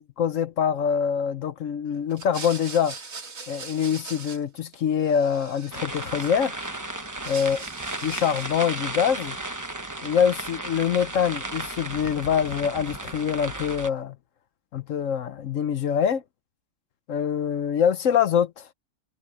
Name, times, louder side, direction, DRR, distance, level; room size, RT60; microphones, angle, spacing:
voice 1, 0.2-2.9 3.5-6.6 7.3-7.6 8.0-9.4 10.0-14.1 14.7-16.2 17.1-18.6, left 8 dB, 70° left, 1.2 m, -24 dB
sound 1, 2.1-4.7 5.0-6.7 7.0-8.6, right 4 dB, 90° right, 2.5 m, -41 dB
sound 2, 5.7-13.9, right 2 dB, 15° right, 1.0 m, -34 dB
omnidirectional pair, 1.4 m